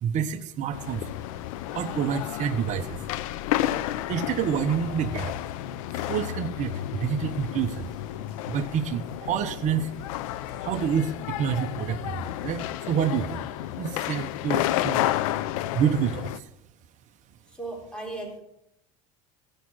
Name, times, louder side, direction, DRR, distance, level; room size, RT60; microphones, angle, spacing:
voice 1, 0.0-1.1 1.7-3.0 4.1-5.3 5.9-7.9 8.5-9.9 10.6-13.4 13.8-15.1 15.7-16.5, right 8 dB, 45° right, 6 dB, 0.9 m, -28 dB
sound 1, 0.7-16.4, left 13 dB, 85° left, 0.6 m, -31 dB
voice 2, 17.6-18.4, right 2 dB, 5° left, 0 dB, 4.0 m, -36 dB
15.0 x 6.7 x 6.3 m, 0.81 s
supercardioid pair, 110°, 17 cm